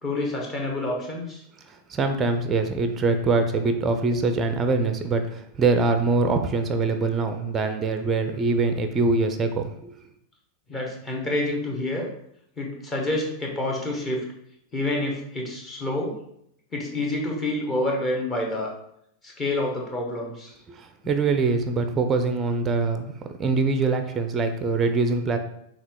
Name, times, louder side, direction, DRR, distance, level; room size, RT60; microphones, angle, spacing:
voice 1, 0.0-1.4 10.7-12.1 12.6-14.2 14.7-16.2 16.7-18.7 19.2-20.5, left 1 dB, 20° left, 0 dB, 1.2 m, -28 dB
voice 2, 1.9-9.9 20.8-23.1 23.4-25.4, right 3 dB, 20° right, 7 dB, 0.5 m, -23 dB
5.7 x 2.4 x 3.6 m, 0.74 s
figure-of-eight pair, 90°, 0 cm